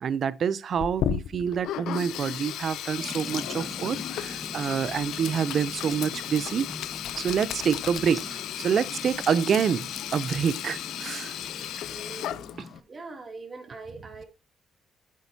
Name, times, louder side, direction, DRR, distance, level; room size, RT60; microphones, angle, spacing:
voice 1, 0.0-6.7 7.2-11.3, right 7 dB, 55° right, 0.6 m, -27 dB
Sink (filling or washing), 0.8-12.8, left 11 dB, 80° left, 0.5 m, -34 dB
sound 1, 3.0-12.8, equal, ahead, 1.4 m, -44 dB
voice 2, 11.9-12.4 12.9-14.3, right 3 dB, 35° right, 2.8 m, -42 dB
9.0 x 8.4 x 2.8 m
cardioid pair, 90°, 0 cm